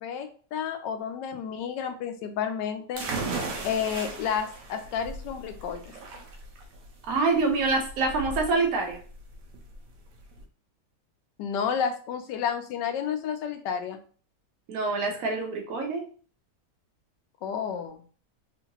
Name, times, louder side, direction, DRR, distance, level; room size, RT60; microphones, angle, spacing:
voice 1, 0.0-3.1 3.6-5.8 11.4-14.0 17.4-18.0, left 7 dB, 85° left, 7 dB, 1.2 m, -31 dB
sound 1, 3.0-10.4, right 3 dB, 85° right, 1.3 m, -37 dB
voice 2, 7.1-9.0 14.7-16.0, right 3 dB, 60° right, 2 dB, 1.2 m, -26 dB
3.7 x 2.5 x 2.9 m, 0.41 s
omnidirectional pair, 1.8 m